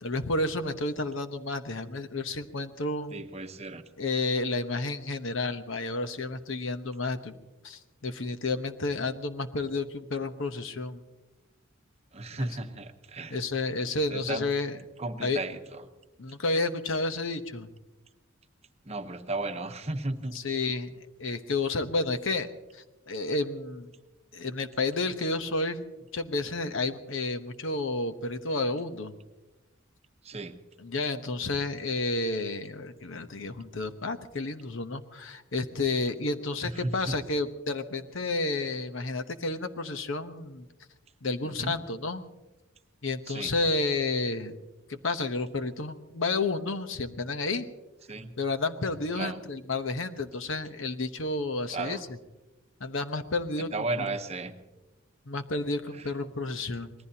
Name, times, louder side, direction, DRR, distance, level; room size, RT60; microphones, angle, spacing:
voice 1, 0.0-3.1 4.0-7.3 7.6-11.0 12.4-12.5 13.3-14.8 15.2-15.4 16.2-17.7 20.3-20.9 21.2-22.5 22.7-23.9 24.3-25.8 26.1-29.1 30.8-40.7 41.2-42.2 43.0-44.6 44.9-47.7 48.4-52.0 52.8-53.7 54.0-54.1 55.3-56.9, left 3 dB, 70° left, 8 dB, 1.0 m, -31 dB
voice 2, 3.1-3.8 12.1-13.4 14.1-14.5 15.0-15.8 18.8-20.4 30.2-30.5 36.6-37.2 41.4-41.8 43.3-43.5 48.1-48.3 49.2-49.4 51.7-52.0 53.6-54.5 55.9-56.1, right 2 dB, 30° right, 6 dB, 0.9 m, -34 dB
26.0 x 19.5 x 2.9 m, 1.1 s
head